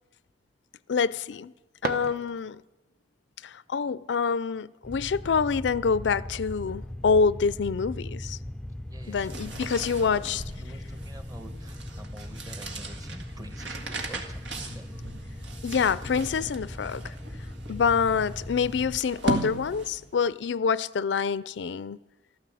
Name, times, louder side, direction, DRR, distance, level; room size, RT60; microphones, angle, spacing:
voice 1, 0.9-1.5 1.8-2.6 3.4-8.4 9.1-10.4 15.6-17.0 17.7-22.0, left 5 dB, 80° left, 0.4 m, -26 dB
sound 1, 1.3-2.8, right 4 dB, 55° right, 1.0 m, -36 dB
sound 2, 4.8-19.0, left 1 dB, 5° left, 0.4 m, -40 dB
voice 2, 8.9-15.0, equal, 20° right, 1.2 m, -48 dB
sound 3, 9.0-20.2, right 2 dB, 90° right, 1.9 m, -38 dB
13.5 x 13.0 x 7.7 m
head